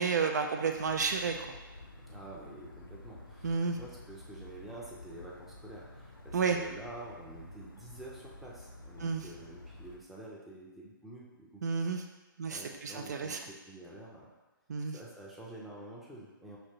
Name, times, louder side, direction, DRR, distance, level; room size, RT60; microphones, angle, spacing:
voice 1, 0.0-1.6 3.4-3.8 6.3-6.6 9.0-9.2 11.6-12.0 12.4-13.4 14.7-15.0, right 5 dB, 50° right, 4 dB, 0.4 m, -31 dB
sound 1, 0.7-10.0, left 2 dB, 90° left, 0.7 m, -50 dB
voice 2, 2.1-11.6 12.5-14.3 14.9-16.6, right 1 dB, ahead, -5 dB, 0.6 m, -48 dB
5.2 x 2.9 x 2.7 m, 1.1 s
figure-of-eight pair, 130°, 11 cm